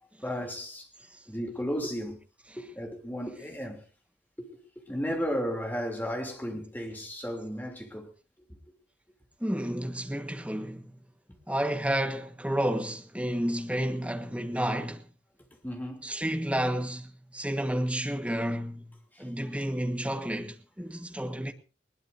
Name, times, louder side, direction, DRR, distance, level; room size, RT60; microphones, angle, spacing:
voice 1, 0.2-0.9 1.3-2.2 2.6-3.8 4.4-8.1 15.6-16.3 19.1-19.3, equal, 10° left, 3.0 m, -34 dB
voice 2, 9.4-10.9 11.5-15.1 16.0-21.5, right 1 dB, 5° right, 1.4 m, -31 dB
20.5 x 20.0 x 2.7 m
head